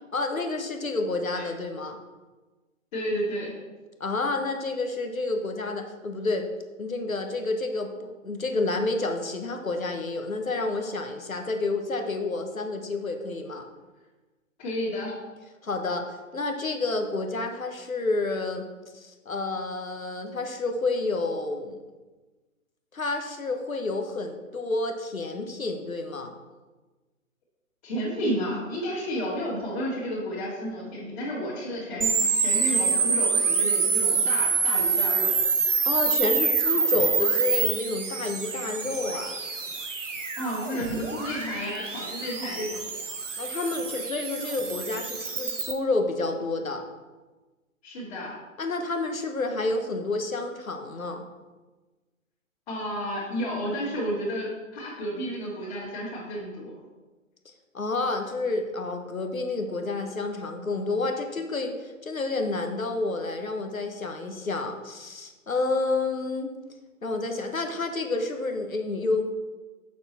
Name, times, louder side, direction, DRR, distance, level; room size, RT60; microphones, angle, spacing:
voice 1, 0.1-2.0 4.0-6.5 6.8-13.7 15.6-18.6 18.9-21.8 22.9-26.3 35.8-39.4 43.4-46.8 48.6-51.2 57.7-66.5 67.0-69.2, left 3 dB, 80° left, 5 dB, 1.2 m, -29 dB
voice 2, 2.9-3.5 14.6-15.1 27.8-35.3 40.4-42.8 47.8-48.3 52.7-56.7, equal, 35° left, -9 dB, 2.4 m, -31 dB
sound 1, 32.0-45.7, right 5 dB, 65° right, 1.3 m, -26 dB
6.7 x 6.3 x 4.2 m, 1.2 s
figure-of-eight pair, 130°, 40 cm